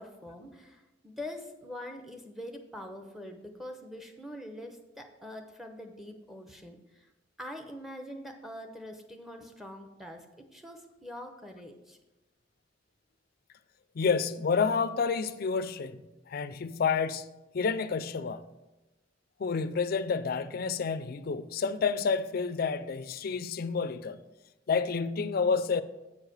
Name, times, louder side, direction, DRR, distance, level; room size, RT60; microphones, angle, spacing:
voice 1, 0.0-7.1 7.4-12.0, left 1 dB, ahead, 0.8 m, -44 dB
voice 2, 14.0-16.0 16.3-17.3 17.5-18.4 19.4-24.2 24.7-25.8, left 5 dB, 50° left, 0.4 m, -29 dB
8.7 x 4.9 x 6.4 m
head